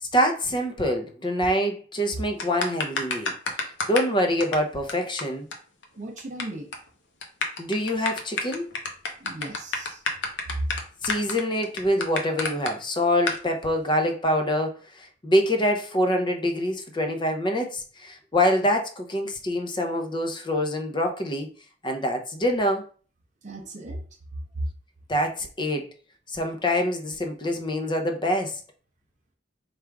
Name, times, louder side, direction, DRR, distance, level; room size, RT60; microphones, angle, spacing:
voice 1, 0.0-3.3 3.6-5.5 7.6-8.7 11.0-21.5 21.8-22.8 25.1-25.9 26.3-28.6, equal, 25° left, 0.6 m, -25 dB
sound 1, 2.4-4.1 4.4-4.5 4.9-5.0 5.2-5.3 5.5-5.6 5.8-6.4 6.7-6.9 7.2-12.7 13.3-13.4, left 3 dB, 75° left, 0.8 m, -28 dB
voice 2, 6.0-6.7 9.2-10.0 10.5-10.7 23.4-24.0 24.5-24.7, right 1 dB, 40° right, 0.6 m, -34 dB
3.5 x 2.4 x 4.5 m
head